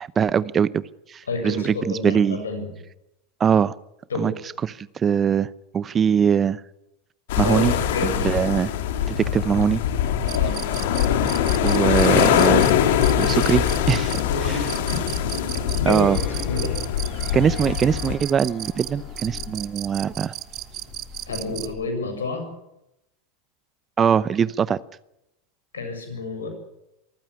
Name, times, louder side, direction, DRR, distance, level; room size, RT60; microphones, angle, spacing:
voice 1, 0.0-2.4 3.4-3.7 4.2-4.3 4.6-5.5 5.7-6.6 7.4-7.7 8.0-8.7 9.2-9.8 11.6-12.7 13.2-14.2 14.5-14.6 15.9-16.2 17.3-20.3 24.0-24.8, right 7 dB, 30° right, 20 dB, 0.8 m, -22 dB
voice 2, 1.3-2.7 4.1-4.4 7.4-8.3 10.3-10.6 14.2-15.0 15.3-16.8 21.3-22.4 25.7-26.5, left 3 dB, 85° left, 6 dB, 7.2 m, -30 dB
sound 1, 7.3-18.1, left 10 dB, 65° left, 2.3 m, -22 dB
sound 2, 10.3-21.7, right 14 dB, 45° right, 1.1 m, -37 dB
sound 3, 12.3-21.8, left 8 dB, 45° left, 3.4 m, -41 dB
24.0 x 15.0 x 9.9 m, 0.89 s
hypercardioid pair, 90°, 0 cm